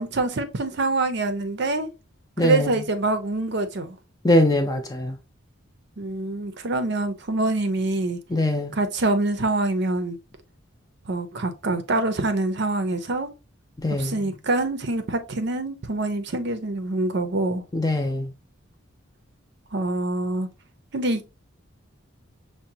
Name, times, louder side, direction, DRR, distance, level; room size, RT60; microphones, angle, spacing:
voice 1, 0.0-1.9 2.4-4.0 6.0-8.2 8.7-10.2 11.1-13.3 14.0-17.6 19.7-20.5 20.9-21.3, right 2 dB, 55° right, 0.6 m, -25 dB
voice 2, 2.4-2.8 4.2-5.2 8.3-8.8 13.8-14.2 17.7-18.3, left 1 dB, 20° left, 0.5 m, -22 dB
5.8 x 2.2 x 2.7 m
head